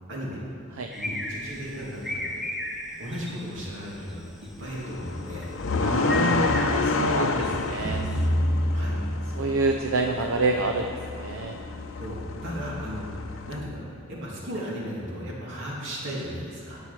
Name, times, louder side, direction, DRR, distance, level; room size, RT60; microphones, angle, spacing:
sound 1, 0.9-8.3, left 1 dB, ahead, 1.0 m, -37 dB
voice 1, 0.9-2.4 3.0-5.5 7.3-7.5 8.7-9.0 11.9-13.0 13.5-16.8, equal, 65° right, -4 dB, 2.8 m, -35 dB
sound 2, 4.6-13.6, left 3 dB, 65° left, 0.6 m, -29 dB
voice 2, 5.8-7.3 7.6-8.1 9.4-11.5, right 3 dB, 85° right, 4 dB, 0.6 m, -27 dB
sound 3, 7.8-10.1, equal, 25° right, 1.2 m, -27 dB
12.0 x 8.1 x 6.0 m, 2.5 s
head